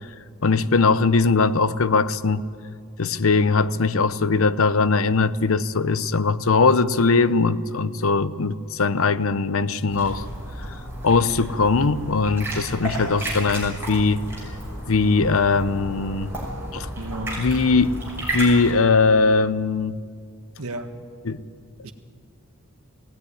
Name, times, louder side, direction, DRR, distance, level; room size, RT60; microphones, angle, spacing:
voice 1, 0.4-2.5 3.0-10.3 11.0-14.2 14.9-16.3 16.7-16.9 17.4-18.0 18.3-20.0 21.3-21.4, left 4 dB, 65° left, 0.7 m, -20 dB
sound 1, 9.9-18.7, right 1 dB, 10° right, 6.4 m, -32 dB
voice 2, 17.0-17.4 20.6-21.0 21.8-21.9, right 1 dB, 80° right, 1.7 m, -33 dB
20.0 x 17.0 x 9.8 m
head